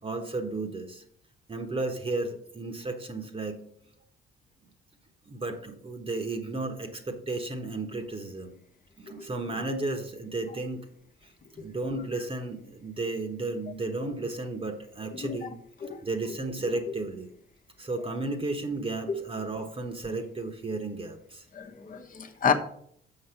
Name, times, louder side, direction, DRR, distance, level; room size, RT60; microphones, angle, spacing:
voice 1, 0.0-1.0 1.5-3.6 5.3-8.6 9.0-10.9 11.2-15.5 16.0-17.3 17.8-21.4, right 2 dB, 30° right, 4 dB, 1.2 m, -33 dB
voice 2, 21.5-22.5, left 6 dB, 45° left, 6 dB, 1.1 m, -28 dB
6.9 x 5.3 x 5.8 m, 0.66 s
cardioid pair, 90°, 20 cm